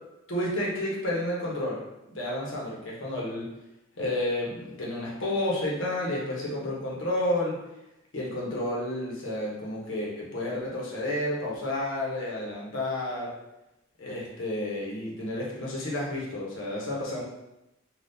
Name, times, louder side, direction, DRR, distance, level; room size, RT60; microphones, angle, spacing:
voice 1, 0.3-1.8 2.1-3.5 4.0-7.6 8.1-13.3 14.0-17.2, left 1 dB, 85° left, -4 dB, 0.9 m, -31 dB
3.4 x 2.3 x 2.6 m, 0.92 s
head